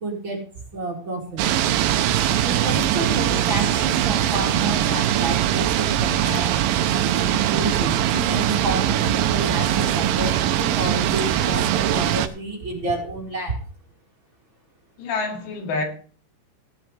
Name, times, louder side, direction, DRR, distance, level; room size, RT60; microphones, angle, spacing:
voice 1, 0.0-0.4 0.7-1.4 2.3-6.6 7.0-13.6, right 2 dB, 35° right, 2.9 m, -29 dB
sound 1, 1.4-12.3, right 11 dB, 80° right, 2.1 m, -21 dB
voice 2, 15.0-15.9, left 3 dB, 85° left, 4.6 m, -27 dB
16.5 x 11.0 x 3.3 m
omnidirectional pair, 4.9 m